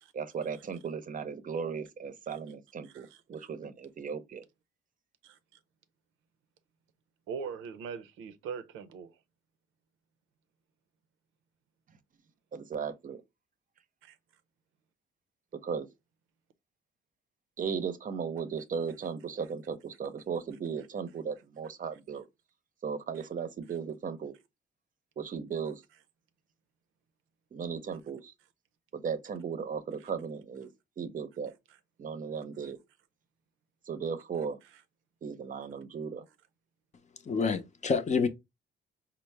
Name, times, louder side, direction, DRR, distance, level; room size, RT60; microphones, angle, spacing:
voice 1, 0.1-4.4 12.5-13.2 15.6-15.9 17.6-22.2 22.8-24.3 25.2-25.8 27.5-28.3 28.9-30.7 31.0-31.5 32.0-32.8 33.9-34.6 35.2-36.2, right 6 dB, 40° right, 0.6 m, -36 dB
voice 2, 2.8-3.5 5.2-5.4 7.3-9.2 14.0-14.2 23.1-23.3 23.7-23.8 30.0-30.1 31.7-31.8 34.7-34.8, right 6 dB, 90° right, 0.5 m, -42 dB
voice 3, 37.3-38.3, left 5 dB, 35° left, 0.6 m, -27 dB
4.2 x 2.0 x 3.2 m
cardioid pair, 90°, 20 cm